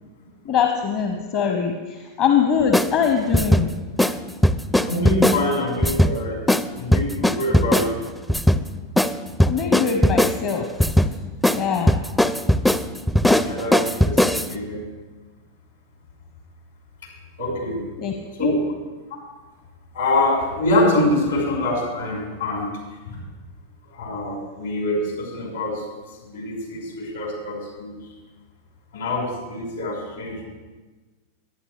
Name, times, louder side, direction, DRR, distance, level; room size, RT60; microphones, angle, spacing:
voice 1, 0.4-3.7 9.4-11.0 11.5-12.0 18.0-18.5, left 7 dB, 40° left, 4 dB, 1.0 m, -23 dB
sound 1, 2.7-2.9 3.3-3.6 4.0-4.2 4.4-5.4 5.8-6.2 6.5-6.6 6.9-7.9 8.3-8.6 9.0-9.1 9.4-10.4 10.8-11.1 11.4-11.6 11.9-14.5, left 1 dB, 5° left, 0.5 m, -18 dB
voice 2, 4.8-6.4 6.8-7.9 13.4-14.8 17.4-17.8 18.4-18.6 19.9-22.7 23.1-23.2 23.9-25.8 26.2-28.0 28.9-30.5, left 2 dB, 70° left, -1 dB, 5.3 m, -24 dB
22.5 x 9.9 x 3.4 m, 1.3 s
figure-of-eight pair, 90°, 0 cm